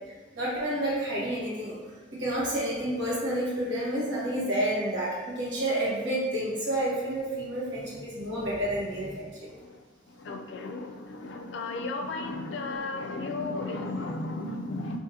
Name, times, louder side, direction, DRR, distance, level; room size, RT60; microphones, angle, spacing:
voice 1, 0.3-1.8 2.2-9.5, right 1 dB, 75° right, -7 dB, 1.2 m, -29 dB
voice 2, 9.4-15.0, left 2 dB, 70° left, 4 dB, 0.4 m, -35 dB
3.9 x 2.5 x 2.8 m, 1.3 s
head